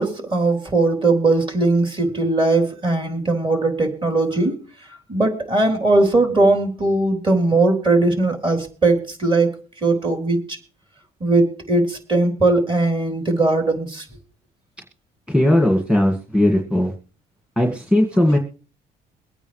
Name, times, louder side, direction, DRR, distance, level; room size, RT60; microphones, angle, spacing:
voice 1, 0.0-4.6 5.1-10.6 11.2-14.1, right 2 dB, 30° right, 4 dB, 3.8 m, -19 dB
voice 2, 15.3-16.9 17.6-18.4, left 1 dB, 5° right, 1 dB, 1.9 m, -18 dB
23.0 x 9.0 x 3.3 m, 0.38 s
cardioid pair, 110°, 17 cm